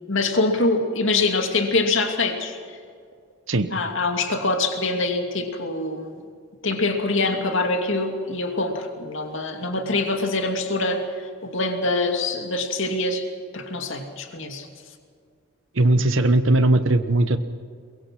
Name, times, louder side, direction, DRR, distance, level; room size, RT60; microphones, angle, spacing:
voice 1, 0.1-2.6 3.7-6.2 6.6-11.0 11.4-13.3 13.5-14.7 15.8-16.0, left 3 dB, 55° left, 4 dB, 2.6 m, -24 dB
voice 2, 15.7-17.4, right 2 dB, 55° right, 10 dB, 1.1 m, -18 dB
23.0 x 22.5 x 6.0 m, 2.2 s
head